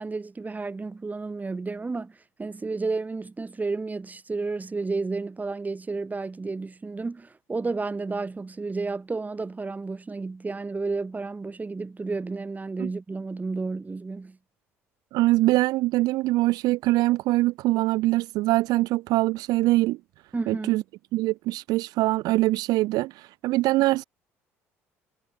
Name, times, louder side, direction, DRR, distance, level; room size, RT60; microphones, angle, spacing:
voice 1, 0.0-14.4 20.3-20.8, right 3 dB, 20° right, 2.3 m, -31 dB
voice 2, 15.1-20.0 20.5-20.8 21.1-24.0, right 18 dB, 60° right, 0.6 m, -23 dB
hypercardioid pair, 55°, 7 cm